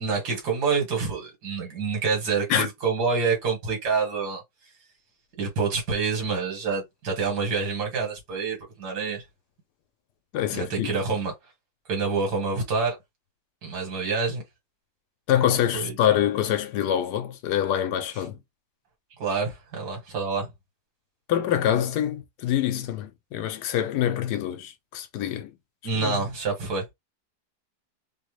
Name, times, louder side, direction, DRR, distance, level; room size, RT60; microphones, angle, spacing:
voice 1, 0.0-4.4 5.4-9.2 10.5-11.3 11.9-13.0 13.6-14.4 15.7-16.0 19.2-20.5 25.8-26.8, right 4 dB, 80° right, 2.0 m, -27 dB
voice 2, 10.3-11.0 15.3-18.4 21.3-25.5 25.9-26.2, left 10 dB, 85° left, 1.2 m, -25 dB
3.6 x 2.1 x 3.1 m
omnidirectional pair, 1.7 m